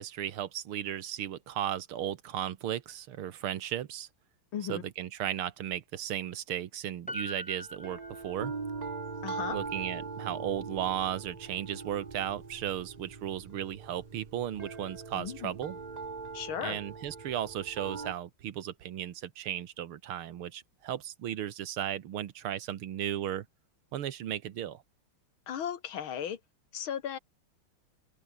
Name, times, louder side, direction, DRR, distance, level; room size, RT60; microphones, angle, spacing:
voice 1, 0.0-4.1 4.7-8.5 9.5-15.8 16.6-23.5 23.9-24.8, right 11 dB, 90° right, 2.1 m, -35 dB
voice 2, 4.5-4.8 9.2-9.6 15.1-15.5 16.3-16.8 25.5-26.4 26.7-27.2, left 9 dB, 75° left, 2.3 m, -36 dB
Piano, 7.1-8.9 9.2-9.3, equal, 5° left, 5.6 m, -43 dB
sound 1, 7.7-18.1, right 4 dB, 25° right, 0.9 m, -41 dB
open air
omnidirectional pair, 2.3 m